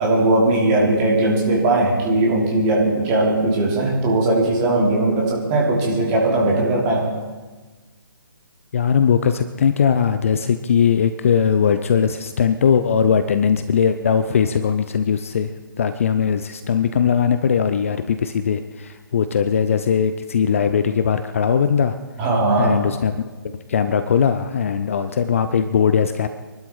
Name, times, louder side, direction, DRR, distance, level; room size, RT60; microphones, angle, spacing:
voice 1, 0.0-7.1 22.2-22.8, right 2 dB, 20° right, -3 dB, 3.1 m, -19 dB
voice 2, 8.7-15.5 15.8-22.0 22.6-23.2 23.7-26.3, left 7 dB, 35° left, 10 dB, 0.6 m, -19 dB
24.5 x 12.0 x 4.4 m, 1.3 s
figure-of-eight pair, 140°, 12 cm